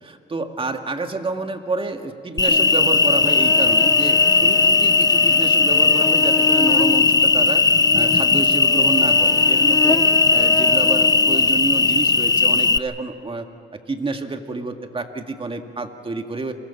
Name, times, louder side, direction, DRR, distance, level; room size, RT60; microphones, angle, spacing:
voice 1, 0.0-7.6 7.9-10.0 10.3-13.5 13.7-16.5, right 3 dB, 25° right, 5 dB, 2.2 m, -29 dB
Cricket, 2.4-12.8, left 3 dB, 20° left, 0.7 m, -17 dB
29.5 x 22.5 x 5.8 m, 2.5 s
cardioid pair, 90°, 20 cm